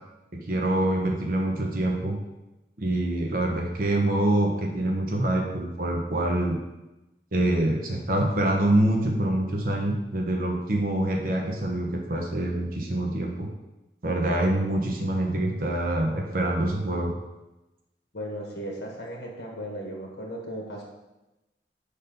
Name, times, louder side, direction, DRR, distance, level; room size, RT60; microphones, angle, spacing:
voice 1, 0.3-2.2 2.8-6.6 7.3-13.5 14.0-17.1, right 1 dB, 50° right, 1 dB, 0.9 m, -25 dB
voice 2, 18.1-20.8, equal, 70° left, -1 dB, 1.4 m, -36 dB
5.2 x 4.2 x 5.3 m, 1.0 s
head